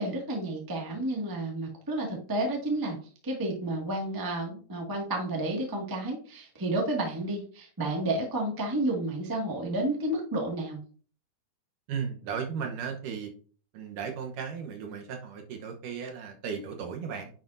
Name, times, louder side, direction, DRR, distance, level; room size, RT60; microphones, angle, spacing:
voice 1, 0.0-3.0 3.2-10.8, right 1 dB, 25° right, -1 dB, 0.4 m, -31 dB
voice 2, 11.9-13.3 13.7-17.3, right 6 dB, 70° right, 3 dB, 2.4 m, -35 dB
9.9 x 6.8 x 2.6 m, 0.42 s
omnidirectional pair, 4.2 m